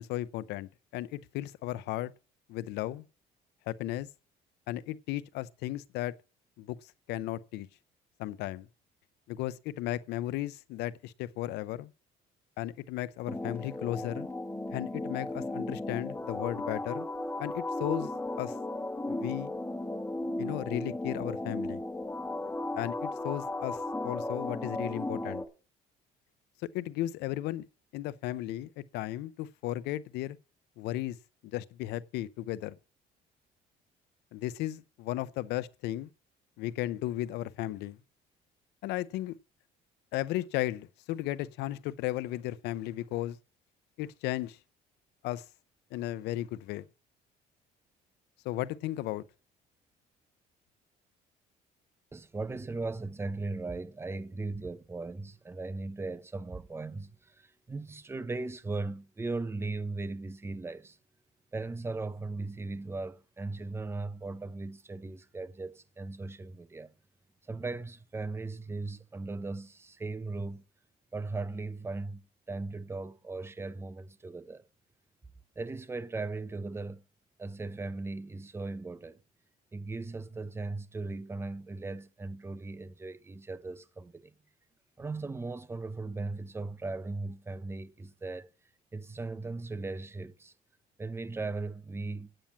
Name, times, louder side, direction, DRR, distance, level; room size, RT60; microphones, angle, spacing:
voice 1, 0.0-2.1 2.5-3.0 3.7-4.1 4.7-6.1 6.6-7.7 8.2-8.7 9.3-11.9 12.6-14.3 14.7-17.1 17.4-18.1 18.4-18.6 19.1-19.5 20.4-21.8 22.7-25.4 26.7-27.6 27.9-30.4 30.8-31.2 31.4-32.8 34.3-36.1 36.6-38.0 38.8-39.4 40.1-43.4 44.0-44.6 45.2-45.4 45.9-46.8 48.4-49.2, left 15 dB, 90° left, 0.7 m, -35 dB
sound 1, 13.3-25.4, left 2 dB, 15° left, 1.6 m, -35 dB
voice 2, 52.1-61.0 61.5-66.9 67.5-70.6 71.1-72.2 72.5-74.6 75.6-77.0 77.4-79.2 79.7-84.3 85.0-88.5 88.9-90.5 91.0-92.3, right 3 dB, 15° right, 0.7 m, -38 dB
8.9 x 8.8 x 5.7 m
cardioid pair, 110°, 17 cm